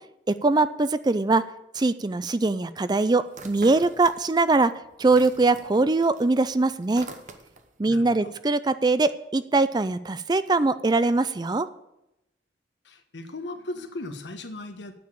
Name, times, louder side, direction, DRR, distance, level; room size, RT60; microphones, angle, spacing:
voice 1, 0.3-1.4 1.7-4.7 5.0-7.1 7.8-11.7, right 3 dB, 25° right, 14 dB, 0.4 m, -22 dB
sound 1, 3.3-4.5 4.8-7.8, right 3 dB, 40° right, 1.0 m, -44 dB
voice 2, 7.9-8.4 12.8-14.9, left 2 dB, 75° left, 7 dB, 1.4 m, -37 dB
9.5 x 7.2 x 8.4 m, 0.86 s
head